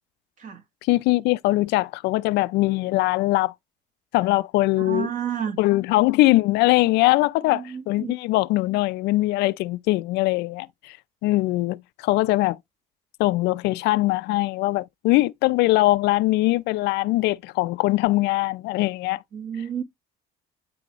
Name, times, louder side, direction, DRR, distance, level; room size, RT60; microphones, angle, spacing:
voice 1, 0.9-3.5 4.1-5.1 5.6-11.0 11.2-12.6 13.2-19.2, left 19 dB, 85° left, 0.4 m, -21 dB
voice 2, 4.8-5.6 7.5-8.1 19.3-19.8, right 8 dB, 45° right, 1.7 m, -30 dB
9.8 x 3.5 x 3.0 m
cardioid pair, 145°, 17 cm